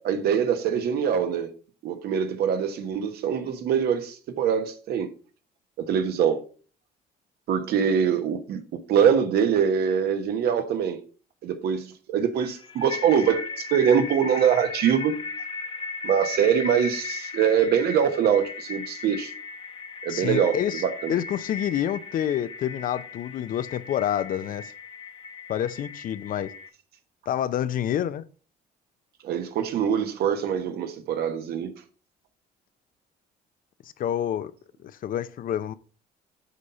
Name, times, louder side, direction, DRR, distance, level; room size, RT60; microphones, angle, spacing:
voice 1, 0.0-1.5 1.8-5.1 5.8-6.4 7.5-11.0 11.4-15.1 16.0-19.3 20.0-21.1 29.2-31.7, right 8 dB, 70° right, 1.2 m, -24 dB
sound 1, 12.4-26.7, left 5 dB, 30° left, 1.0 m, -37 dB
voice 2, 20.1-20.8 21.1-24.7 25.5-26.5 27.3-28.3 34.0-34.5 34.8-35.7, left 10 dB, 55° left, 0.6 m, -28 dB
8.0 x 4.1 x 5.6 m
cardioid pair, 110°, 17 cm